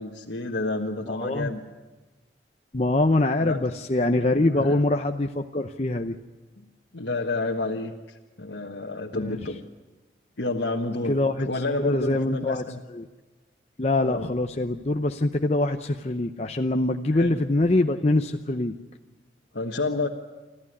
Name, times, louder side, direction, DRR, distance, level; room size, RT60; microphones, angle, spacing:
voice 1, 0.0-1.6 3.4-3.6 4.4-4.7 6.9-7.9 8.4-9.6 10.4-11.2 11.4-12.8 14.0-14.3 17.1-17.4 19.5-20.1, left 2 dB, 90° left, -1 dB, 1.4 m, -29 dB
voice 2, 1.1-1.5 2.7-6.2 9.1-9.4 11.1-11.5 11.8-12.6 12.9-13.1 13.8-18.7, left 2 dB, 35° left, 5 dB, 0.7 m, -24 dB
26.0 x 14.5 x 9.8 m, 1.2 s
head